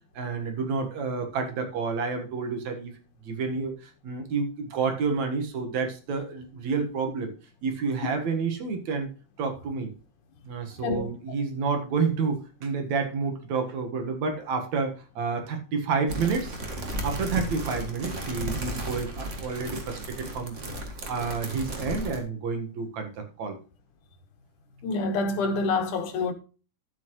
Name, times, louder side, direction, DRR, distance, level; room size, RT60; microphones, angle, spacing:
voice 1, 0.1-2.9 3.2-7.3 7.6-9.1 9.4-9.9 10.4-16.5 17.0-20.6 20.8-23.6, right 5 dB, 65° right, 2.9 m, -29 dB
voice 2, 10.8-11.1 24.8-26.3, left 3 dB, 85° left, 2.9 m, -27 dB
sound 1, 16.1-22.2, right 1 dB, 30° right, 1.5 m, -34 dB
12.0 x 8.0 x 3.1 m
omnidirectional pair, 3.5 m